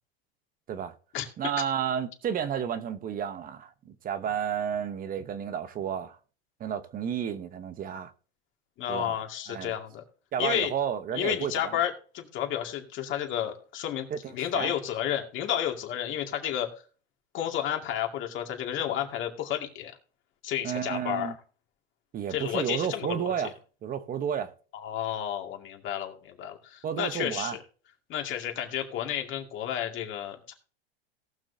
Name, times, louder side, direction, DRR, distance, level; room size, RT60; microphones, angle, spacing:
voice 1, 1.4-6.2 6.6-8.1 8.9-9.2 9.5-9.7 10.3-11.7 14.1-14.7 20.6-21.3 22.1-23.5 23.8-24.5 26.8-27.6, right 8 dB, 30° right, 1.0 m, -31 dB
voice 2, 8.8-10.0 10.4-10.7 11.1-16.7 17.3-20.0 20.4-21.3 22.3-23.3 24.7-27.6 28.1-30.5, left 10 dB, 40° left, 2.3 m, -31 dB
18.0 x 6.1 x 2.8 m
supercardioid pair, 115°, 30 cm